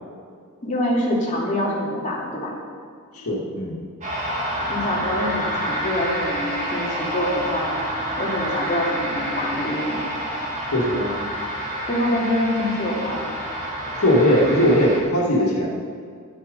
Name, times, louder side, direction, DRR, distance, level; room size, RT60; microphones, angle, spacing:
voice 1, 0.6-2.5 4.7-7.8 8.2-10.1 11.9-13.4, left 1 dB, 35° left, -4 dB, 2.7 m, -25 dB
voice 2, 3.1-3.8 10.7-11.2 14.0-15.7, equal, 75° left, -3 dB, 2.1 m, -19 dB
sound 1, 4.0-15.0, equal, 35° right, 2.4 m, -28 dB
11.0 x 9.0 x 5.4 m, 2.1 s
head